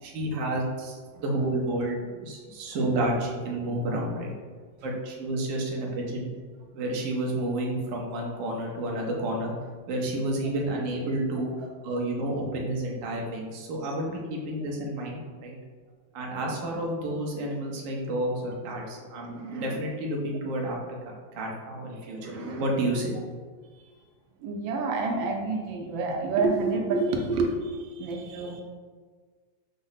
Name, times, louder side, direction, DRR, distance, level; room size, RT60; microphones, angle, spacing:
voice 1, 0.0-4.3 4.8-6.3 6.7-9.5 9.9-15.6 16.1-20.8 21.3-23.1, right 1 dB, 60° right, -1 dB, 0.9 m, -30 dB
voice 2, 24.4-28.6, right 3 dB, 85° right, 2 dB, 1.3 m, -28 dB
5.3 x 2.0 x 3.9 m, 1.5 s
omnidirectional pair, 2.1 m